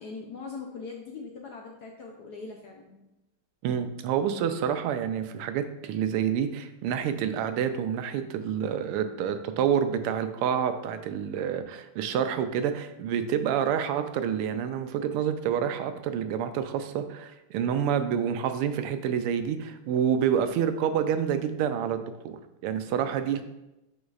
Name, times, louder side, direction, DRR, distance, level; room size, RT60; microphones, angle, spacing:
voice 1, 0.0-3.1 13.4-13.7, left 4 dB, 70° left, 1 dB, 1.0 m, -41 dB
voice 2, 3.6-22.4 22.6-23.4, right 8 dB, 90° right, 9 dB, 1.5 m, -28 dB
10.0 x 4.0 x 2.4 m, 0.94 s
omnidirectional pair, 2.4 m